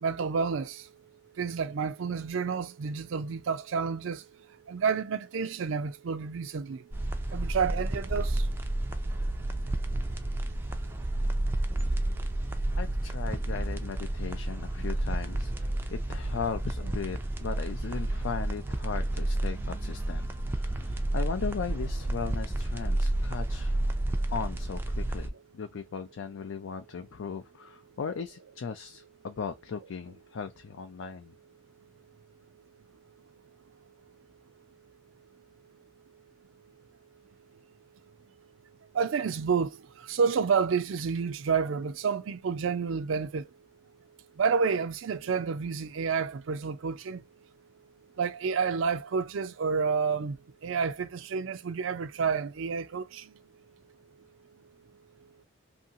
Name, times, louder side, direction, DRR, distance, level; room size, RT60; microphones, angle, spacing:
voice 1, 0.0-0.9 1.4-4.2 4.7-6.8 7.3-8.5 38.9-39.7 40.0-43.5 44.4-47.2 48.2-50.4 50.6-53.3, right 5 dB, 85° right, 0.4 m, -29 dB
sound 1, 6.9-25.3, right 1 dB, 10° right, 0.3 m, -31 dB
voice 2, 12.8-20.3 20.5-23.7 24.3-31.3, left 6 dB, 80° left, 0.4 m, -37 dB
2.7 x 2.7 x 2.7 m
head